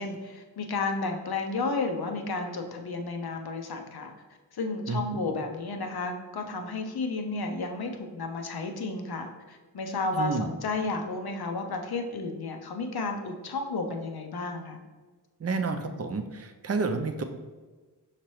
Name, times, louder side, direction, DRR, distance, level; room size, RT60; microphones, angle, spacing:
voice 1, 0.0-4.1 4.5-14.8, left 3 dB, 70° left, 4 dB, 0.7 m, -32 dB
voice 2, 4.9-5.2 10.1-10.5 15.4-17.2, right 3 dB, 40° right, 7 dB, 0.5 m, -30 dB
5.8 x 2.9 x 3.1 m, 1.3 s
cardioid pair, 45°, 40 cm